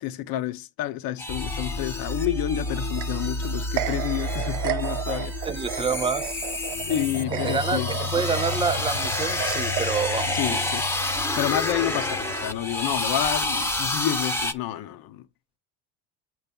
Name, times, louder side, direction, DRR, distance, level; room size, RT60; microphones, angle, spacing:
voice 1, 0.0-5.3 6.9-7.9 10.3-10.9 11.3-15.2, left 13 dB, 60° left, 1.0 m, -29 dB
sound 1, 1.2-14.5, left 2 dB, 5° left, 0.9 m, -30 dB
sound 2, 1.3-13.9, left 3 dB, 35° left, 1.0 m, -33 dB
sound 3, 2.7-10.6, right 16 dB, 80° right, 0.7 m, -34 dB
voice 2, 5.5-6.4 7.4-10.6, right 5 dB, 15° right, 0.4 m, -28 dB
8.0 x 3.2 x 5.3 m
cardioid pair, 120°, 40 cm